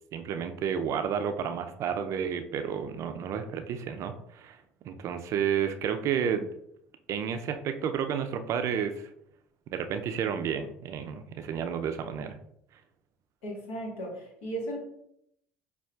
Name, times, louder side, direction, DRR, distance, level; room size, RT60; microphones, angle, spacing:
voice 1, 0.1-4.6 4.8-6.5 7.1-9.1 9.7-12.4, right 7 dB, 55° right, 8 dB, 0.4 m, -31 dB
voice 2, 13.4-14.8, right 1 dB, 75° left, -1 dB, 1.3 m, -36 dB
5.2 x 2.4 x 2.3 m, 0.73 s
hypercardioid pair, 70°, 6 cm